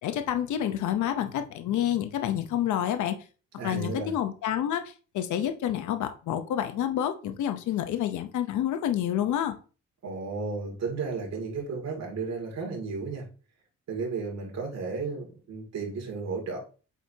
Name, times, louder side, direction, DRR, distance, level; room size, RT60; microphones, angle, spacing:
voice 1, 0.0-3.2 3.6-9.5, left 10 dB, 75° left, 8 dB, 0.8 m, -28 dB
voice 2, 3.6-4.1 10.0-13.3 13.9-16.6, right 4 dB, 60° right, -1 dB, 2.4 m, -33 dB
8.0 x 4.6 x 2.8 m, 0.36 s
cardioid pair, 90°, 30 cm